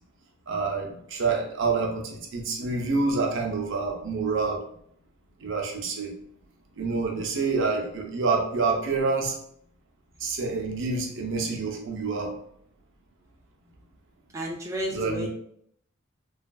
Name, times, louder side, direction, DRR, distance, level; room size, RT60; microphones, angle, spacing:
voice 1, 0.5-4.6 5.4-6.1 6.8-9.3 10.2-12.3 14.9-15.3, right 4 dB, 65° right, 1 dB, 0.6 m, -27 dB
voice 2, 14.3-15.3, right 1 dB, 15° right, -1 dB, 0.3 m, -32 dB
3.3 x 2.4 x 2.2 m, 0.69 s
head